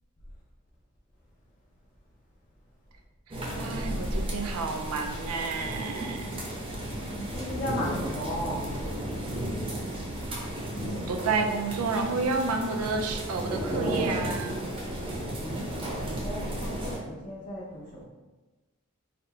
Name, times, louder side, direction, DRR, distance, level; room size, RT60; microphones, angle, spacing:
sound 1, 3.3-17.0, right 1 dB, 25° right, 0.6 m, -33 dB
voice 1, 3.3-6.3 10.8-14.6, right 4 dB, 90° right, 4 dB, 0.5 m, -30 dB
voice 2, 6.9-8.6 15.4-15.7 16.0-18.0, equal, 40° left, -4 dB, 0.5 m, -36 dB
4.0 x 2.1 x 3.9 m, 1.2 s
head